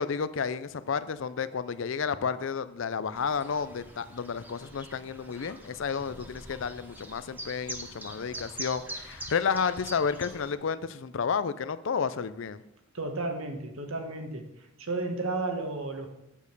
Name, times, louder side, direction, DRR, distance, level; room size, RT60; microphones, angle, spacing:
voice 1, 0.0-12.6, left 6 dB, 65° left, 14 dB, 0.4 m, -31 dB
Chirp tweet, 3.1-10.5, right 1 dB, 10° right, 0.9 m, -44 dB
voice 2, 12.9-14.5 14.8-16.1, right 2 dB, 80° right, 4 dB, 1.4 m, -33 dB
8.8 x 5.1 x 6.7 m, 0.84 s
head